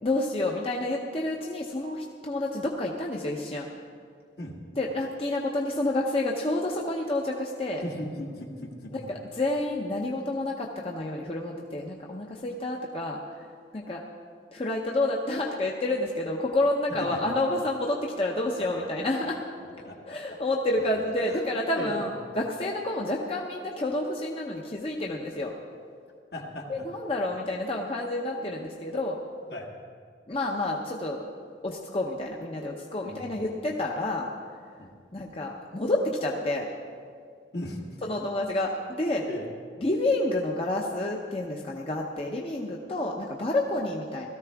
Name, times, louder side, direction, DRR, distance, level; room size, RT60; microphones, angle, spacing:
voice 1, 0.0-3.7 4.8-7.8 8.9-13.2 13.7-14.0 14.5-19.4 19.8-22.1 22.4-25.5 26.7-29.2 30.3-31.2 31.6-34.3 35.1-36.7 38.0-39.3 39.8-44.3, left 2 dB, 30° left, -1 dB, 0.8 m, -29 dB
voice 2, 7.8-9.1 16.9-17.2 18.6-18.7 19.0-19.1 19.6-20.2 21.3-21.5 21.7-22.3 26.3-26.9 29.5-29.7 33.0-33.4 34.8-34.9 37.5-37.9 39.3-39.4, left 1 dB, 65° left, 0 dB, 1.8 m, -38 dB
17.5 x 14.0 x 3.5 m, 2.1 s
head